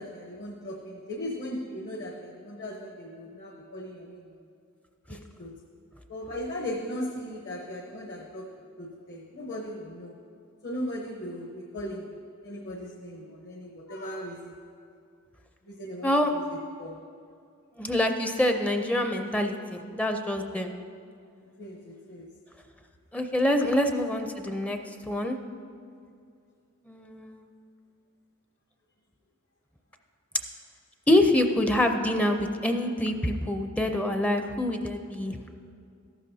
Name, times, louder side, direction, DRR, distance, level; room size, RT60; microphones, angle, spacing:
voice 1, 0.0-4.3 5.1-5.5 6.1-8.5 8.8-10.1 10.6-12.1 12.4-14.5 15.7-16.4 16.8-17.0 21.4-22.3 23.6-23.7, left 1 dB, 55° left, 0 dB, 0.9 m, -38 dB
voice 2, 16.0-16.4 17.8-20.7 23.1-25.4 26.9-27.4 31.1-35.4, left 1 dB, 5° left, 5 dB, 0.4 m, -26 dB
13.5 x 12.0 x 2.7 m, 2.4 s
head